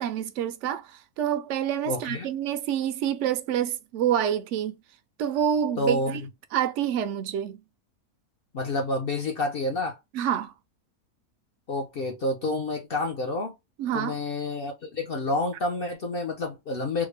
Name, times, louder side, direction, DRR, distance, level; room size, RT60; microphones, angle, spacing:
voice 1, 0.0-4.8 5.2-6.2 6.5-7.6 10.1-10.5 13.8-14.2, right 9 dB, 65° right, 0.7 m, -27 dB
voice 2, 1.9-2.3 5.8-6.3 8.5-10.0 11.7-13.5 13.9-17.1, left 2 dB, 55° left, 0.6 m, -29 dB
3.6 x 2.1 x 3.2 m
omnidirectional pair, 1.6 m